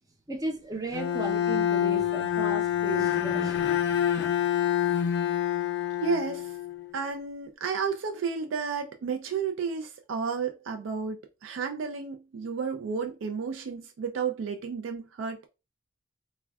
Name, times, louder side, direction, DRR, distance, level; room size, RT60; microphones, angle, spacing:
voice 1, 0.3-3.6 3.9-4.0, right 2 dB, 20° right, 0.5 m, -35 dB
Bowed string instrument, 0.9-6.9, left 10 dB, 60° left, 0.3 m, -27 dB
voice 2, 6.0-6.5 6.9-15.5, right 5 dB, 90° right, 0.3 m, -32 dB
3.4 x 2.2 x 2.2 m
head